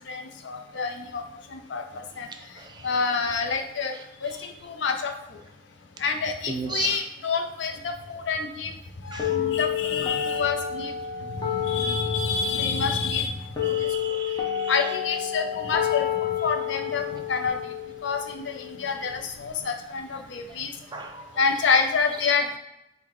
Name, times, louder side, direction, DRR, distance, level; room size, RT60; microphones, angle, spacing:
voice 1, 0.1-1.2 1.5-1.8 2.2-2.3 2.8-3.9 4.2-5.1 6.0-8.7 9.0-10.9 11.3-13.3 13.6-13.9 14.7-17.7 18.0-20.7 21.4-22.6, left 5 dB, 80° left, 4 dB, 0.5 m, -27 dB
voice 2, 6.5-7.0 9.1-9.2 13.7-14.7 20.9-21.3, right 4 dB, 25° right, 4 dB, 0.4 m, -34 dB
sound 1, 9.2-19.2, left 10 dB, 20° left, 0.7 m, -30 dB
4.7 x 2.1 x 3.7 m, 0.87 s
head